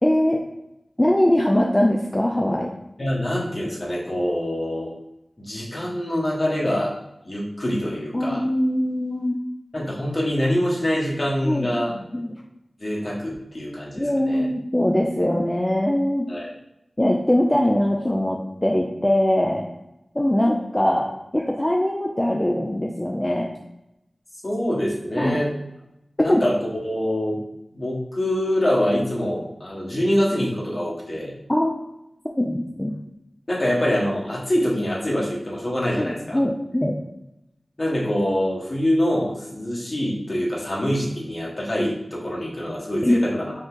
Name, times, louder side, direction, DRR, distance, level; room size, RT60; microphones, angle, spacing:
voice 1, 0.0-0.4 1.0-2.7 8.1-9.4 11.4-12.3 14.0-16.3 17.0-19.7 20.2-23.5 25.2-25.4 26.3-26.4 31.5-31.7 32.4-33.0 36.0-37.0 43.0-43.2, left 1 dB, 20° left, 0 dB, 0.5 m, -22 dB
voice 2, 3.0-4.9 5.4-7.0 7.2-8.4 9.7-11.9 12.8-14.5 16.3-16.5 24.4-25.5 26.2-26.6 26.8-27.4 27.7-31.3 33.5-36.4 37.8-43.5, equal, 45° left, -5 dB, 1.5 m, -25 dB
5.2 x 2.3 x 3.9 m, 0.88 s
cardioid pair, 40°, 0 cm